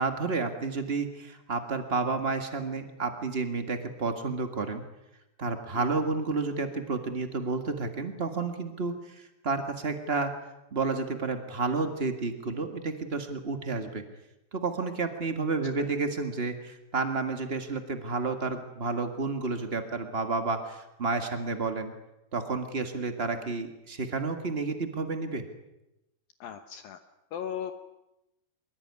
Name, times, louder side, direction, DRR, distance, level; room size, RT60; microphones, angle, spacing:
voice 1, 0.0-4.8 5.4-10.3 10.7-14.0 14.5-21.9 22.3-25.4, right 4 dB, 80° right, 6 dB, 0.5 m, -31 dB
voice 2, 26.4-27.0 27.3-27.7, left 9 dB, 70° left, 8 dB, 2.6 m, -37 dB
24.0 x 22.5 x 9.7 m, 0.91 s
omnidirectional pair, 4.6 m